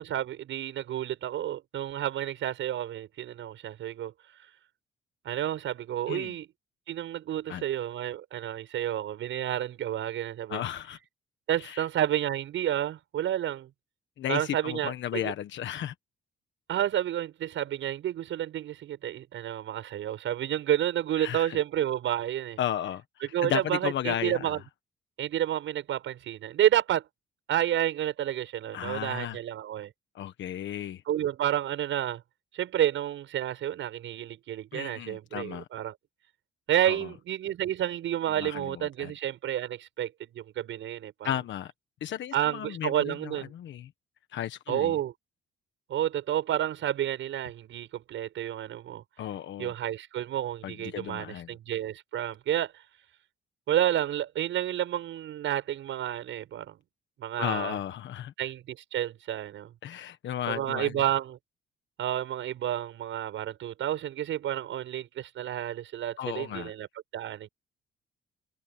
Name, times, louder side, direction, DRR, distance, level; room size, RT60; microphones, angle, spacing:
voice 1, 0.0-4.1 5.2-6.5 6.9-10.6 11.5-13.7 14.3-15.3 16.7-22.6 23.2-24.6 25.2-27.0 27.5-29.9 31.1-32.2 32.5-35.9 36.7-41.3 42.3-43.5 44.7-45.1 45.9-49.0 49.6-52.7 53.7-56.8 57.2-57.8 58.4-59.7 60.5-61.4 62.0-66.9 67.1-67.5, right 11 dB, 75° right, 7.9 m, -30 dB
voice 2, 10.5-11.0 11.6-11.9 14.2-15.9 21.2-21.6 22.6-24.6 28.7-29.4 30.1-31.0 34.7-35.7 36.9-37.1 38.4-39.1 41.2-41.7 42.0-43.9 44.3-45.0 49.2-49.7 50.6-51.5 57.4-58.3 59.8-61.0 66.2-66.7, left 11 dB, 70° left, 1.3 m, -34 dB
cardioid pair, 90°, 20 cm